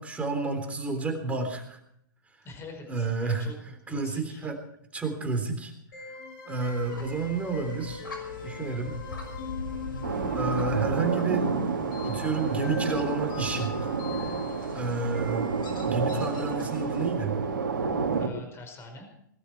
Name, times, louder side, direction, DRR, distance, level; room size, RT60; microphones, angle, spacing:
voice 1, 0.0-1.8 2.9-3.5 3.9-4.6 4.9-6.1 6.5-8.0 8.4-9.0 10.3-11.5 12.0-13.9 14.2-14.4 14.7-15.5 15.8-17.4, right 4 dB, 10° right, 5 dB, 3.5 m, -30 dB
voice 2, 2.4-4.4 10.7-10.9 18.2-19.1, left 2 dB, 25° left, 5 dB, 4.9 m, -44 dB
sound 1, 5.9-16.1, left 6 dB, 60° left, 4.8 m, -42 dB
sound 2, 6.7-17.1, left 2 dB, 90° left, 5.8 m, -43 dB
sound 3, 10.0-18.3, right 5 dB, 85° right, 2.8 m, -29 dB
20.5 x 12.5 x 4.7 m, 0.72 s
hypercardioid pair, 120°, 11 cm